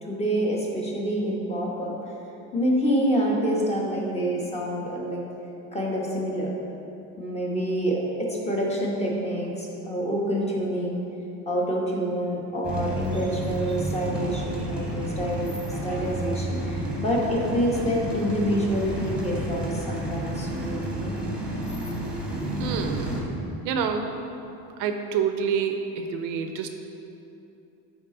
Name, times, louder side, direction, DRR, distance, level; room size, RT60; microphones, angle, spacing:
voice 1, 0.0-2.0 2.5-5.2 5.7-6.5 7.2-11.0 11.5-21.2, equal, 20° left, -2 dB, 1.1 m, -27 dB
sound 1, 12.6-23.2, right 1 dB, 5° right, 1.1 m, -31 dB
voice 2, 22.6-23.1 23.6-24.2 24.8-26.7, right 6 dB, 65° right, 6 dB, 0.6 m, -27 dB
9.3 x 4.2 x 3.8 m, 2.9 s
cardioid pair, 140°, 35 cm